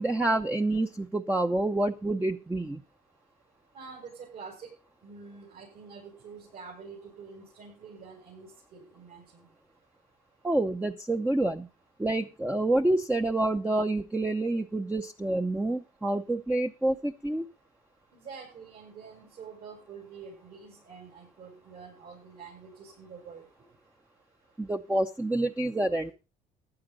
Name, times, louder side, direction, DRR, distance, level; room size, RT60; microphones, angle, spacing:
voice 1, 0.0-2.8 10.4-11.7 12.0-17.5 24.6-26.1, right 2 dB, 10° right, 4 dB, 0.8 m, -28 dB
voice 2, 3.7-4.7 5.0-9.5 18.1-23.4, right 5 dB, 65° right, -3 dB, 7.6 m, -47 dB
14.5 x 11.5 x 4.0 m, 0.31 s
cardioid pair, 110°, 17 cm